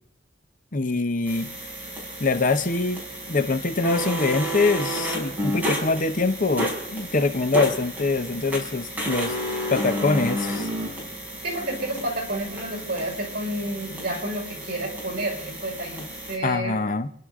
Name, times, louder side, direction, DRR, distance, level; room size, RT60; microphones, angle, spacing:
voice 1, 0.7-1.5 2.2-3.0 3.3-9.3 9.7-10.7 16.4-17.1, left 3 dB, 45° left, 0.9 m, -24 dB
sound 1, 1.2-16.4, equal, 10° right, 5.7 m, -31 dB
voice 2, 11.4-16.8, right 1 dB, 55° right, 5.3 m, -30 dB
30.0 x 11.5 x 3.7 m
head